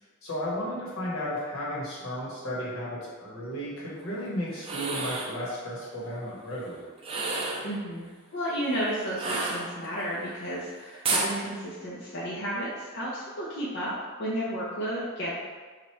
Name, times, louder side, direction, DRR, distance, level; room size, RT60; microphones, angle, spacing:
voice 1, 0.2-6.8, equal, 80° left, -7 dB, 1.3 m, -34 dB
sound 1, 4.6-5.4 7.0-7.7 9.2-10.1 11.0-11.3, right 3 dB, 25° right, 0.4 m, -30 dB
voice 2, 7.6-15.4, equal, 55° left, -8 dB, 0.6 m, -32 dB
3.1 x 2.5 x 4.4 m, 1.4 s
head